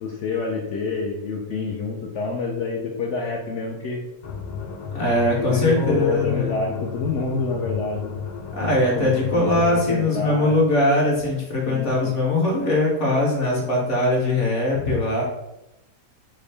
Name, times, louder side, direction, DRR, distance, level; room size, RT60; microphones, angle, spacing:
voice 1, 0.0-4.0 5.1-8.2 9.0-10.6 11.6-12.2, left 4 dB, 70° left, -1 dB, 0.7 m, -27 dB
sound 1, 4.2-9.9, left 6 dB, 85° left, 1.1 m, -33 dB
voice 2, 4.9-6.6 8.5-15.2, left 1 dB, 55° left, -3 dB, 1.1 m, -21 dB
3.6 x 2.5 x 3.2 m, 0.90 s
omnidirectional pair, 1.7 m